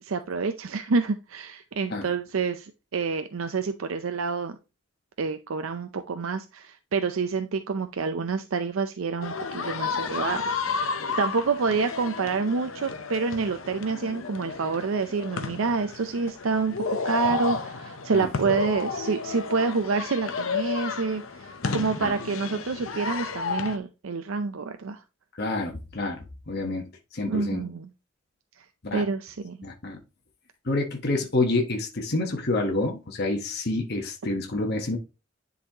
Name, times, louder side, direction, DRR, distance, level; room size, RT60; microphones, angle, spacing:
voice 1, 0.0-4.6 5.2-25.0 27.3-27.9 28.9-29.6, right 4 dB, 85° right, 0.5 m, -28 dB
sound 1, 9.2-23.8, left 4 dB, 80° left, 0.7 m, -32 dB
voice 2, 21.6-22.1 25.4-27.6 28.8-29.0 29.6-30.0 30.6-35.0, left 2 dB, 50° left, 1.2 m, -28 dB
10.0 x 4.1 x 2.9 m
head